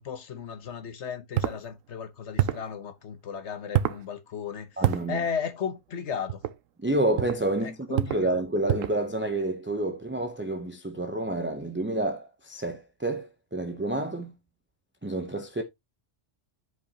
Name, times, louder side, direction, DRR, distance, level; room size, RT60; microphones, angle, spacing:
voice 1, 0.0-6.4 7.6-8.4, left 7 dB, 65° left, 1.2 m, -35 dB
sound 1, 1.3-1.6 2.4-2.7 3.7-4.0 4.8-5.1 6.3-6.6 7.2-7.4 7.9-8.3 8.7-9.0, right 12 dB, 85° right, 1.0 m, -26 dB
voice 2, 4.8-5.2 6.8-14.3 15.0-15.6, right 2 dB, 10° right, 0.6 m, -29 dB
11.0 x 5.2 x 2.8 m
omnidirectional pair, 1.3 m